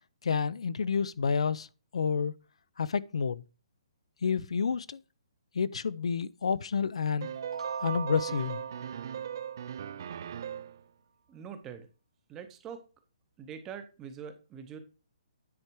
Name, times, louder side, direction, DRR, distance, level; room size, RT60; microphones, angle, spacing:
voice 1, 0.2-1.7 1.9-2.3 2.8-3.4 4.2-5.0 5.5-7.3 7.8-8.6, left 6 dB, 75° left, 0.5 m, -29 dB
sound 1, 7.2-10.8, right 9 dB, 35° right, 0.4 m, -39 dB
sound 2, 7.3-10.1, right 5 dB, 75° right, 0.7 m, -41 dB
voice 2, 11.3-11.9 12.3-12.8 13.4-14.8, right 7 dB, 10° right, 0.7 m, -43 dB
9.6 x 4.7 x 4.5 m
hypercardioid pair, 180°, 3 cm